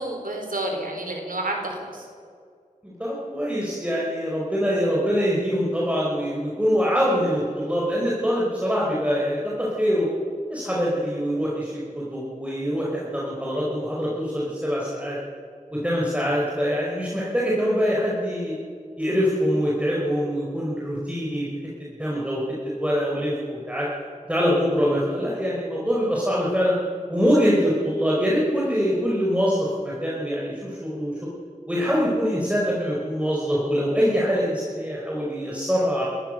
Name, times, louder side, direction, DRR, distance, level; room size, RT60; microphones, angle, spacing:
voice 1, 0.0-2.0, right 1 dB, 85° right, 2 dB, 4.4 m, -30 dB
voice 2, 2.8-10.1 10.5-15.2 15.7-18.5 19.0-21.5 21.8-22.4 22.8-23.9 24.3-26.7 27.1-31.1 31.7-36.0, equal, 10° right, -5 dB, 4.8 m, -24 dB
29.0 x 15.0 x 6.6 m, 2.2 s
wide cardioid pair, 55°, 14 cm